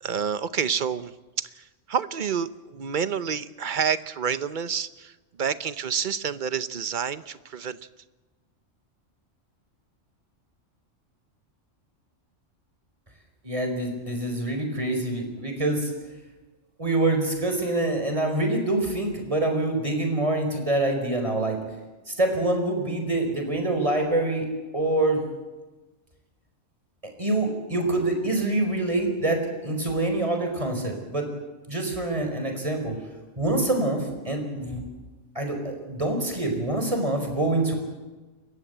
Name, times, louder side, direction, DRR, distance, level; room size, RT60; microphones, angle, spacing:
voice 1, 0.0-1.1 1.4-5.1 5.4-7.8, right 7 dB, 45° right, 14 dB, 0.9 m, -28 dB
voice 2, 13.4-15.9 16.8-21.6 22.1-24.5 24.7-25.2 27.2-31.3 31.7-33.0 33.4-34.8 35.3-37.7, right 2 dB, 25° right, 4 dB, 4.7 m, -25 dB
29.0 x 15.0 x 8.0 m, 1.2 s
omnidirectional pair, 1.3 m